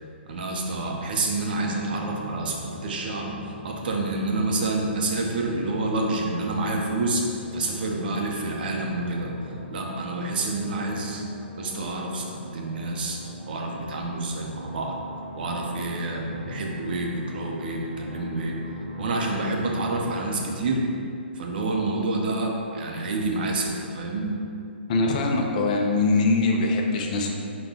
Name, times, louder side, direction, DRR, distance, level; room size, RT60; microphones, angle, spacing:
voice 1, 0.3-3.4 3.6-9.3 9.7-11.2 11.6-13.2 13.5-15.0 15.3-18.6 19.0-20.8 21.4-24.4, right 2 dB, 55° right, 0 dB, 0.6 m, -28 dB
sound 1, 1.5-20.5, left 1 dB, 25° left, 0.8 m, -41 dB
voice 2, 24.9-27.3, left 3 dB, 40° left, 1 dB, 0.4 m, -22 dB
3.9 x 2.2 x 3.7 m, 2.5 s
hypercardioid pair, 150°, 6 cm